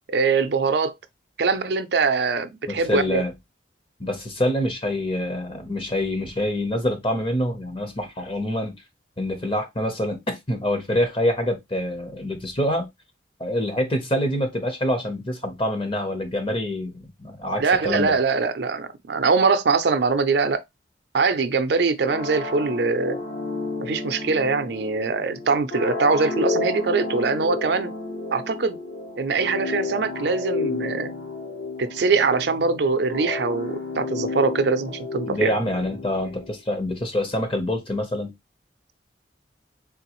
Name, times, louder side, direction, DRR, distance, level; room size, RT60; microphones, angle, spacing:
voice 1, 0.1-0.9 1.4-3.2 17.6-20.6 21.1-23.2 23.8-27.9 28.3-28.8 29.2-31.1 31.8-35.5, right 4 dB, 65° right, 0.5 m, -22 dB
voice 2, 2.7-3.3 4.0-8.8 9.2-12.9 13.4-18.1 35.3-38.3, left 1 dB, 30° left, 0.9 m, -26 dB
sound 1, 22.0-36.6, left 3 dB, 60° left, 1.2 m, -31 dB
3.7 x 3.4 x 2.9 m
head